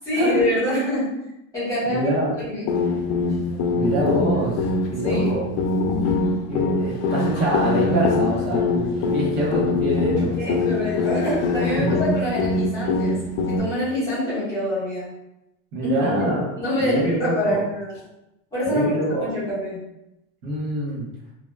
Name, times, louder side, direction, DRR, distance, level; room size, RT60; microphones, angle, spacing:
voice 1, 0.0-1.2 1.5-2.1 2.4-2.7 5.0-5.3 10.4-13.2 13.5-15.1 15.8-16.1 16.6-18.0 18.5-18.9 19.2-19.8, left 1 dB, 10° left, -11 dB, 1.2 m, -25 dB
voice 2, 1.8-2.3 3.7-4.6 4.9-5.5 6.5-10.6 11.7-12.0 15.7-16.5 16.8-17.6 18.6-19.3 20.4-21.1, right 1 dB, 60° right, -5 dB, 1.1 m, -25 dB
sound 1, 2.7-13.6, left 3 dB, 85° left, 0.5 m, -23 dB
2.8 x 2.1 x 2.2 m, 0.88 s
supercardioid pair, 165°, 34 cm